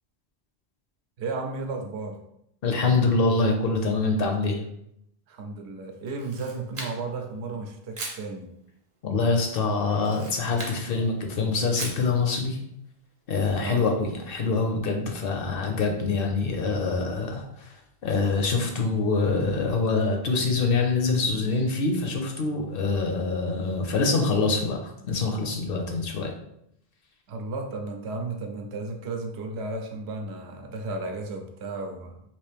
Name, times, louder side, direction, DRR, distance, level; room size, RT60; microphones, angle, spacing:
voice 1, 1.2-2.2 5.3-8.5 13.6-13.9 27.3-32.2, right 3 dB, 80° right, 3 dB, 0.8 m, -34 dB
voice 2, 2.6-4.6 9.0-12.6 13.3-17.7 18.0-26.3, left 3 dB, 65° left, 2 dB, 0.7 m, -25 dB
Camera, 6.1-7.2 7.9-8.3 9.9-10.8 11.8-12.1, right 2 dB, 35° right, 0.6 m, -37 dB
3.0 x 2.6 x 3.3 m, 0.76 s
omnidirectional pair, 1.1 m